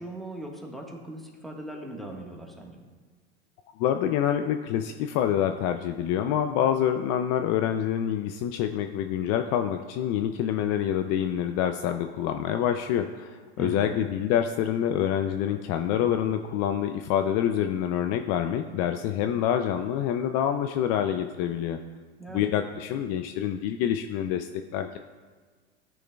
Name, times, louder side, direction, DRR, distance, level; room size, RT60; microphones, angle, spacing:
voice 1, 0.0-2.8 13.6-14.0 22.2-22.5, right 1 dB, ahead, 0 dB, 1.4 m, -39 dB
voice 2, 3.8-21.8 22.3-25.0, left 10 dB, 50° left, 7 dB, 0.5 m, -26 dB
13.5 x 6.3 x 2.3 m, 1.5 s
hypercardioid pair, 105°, 34 cm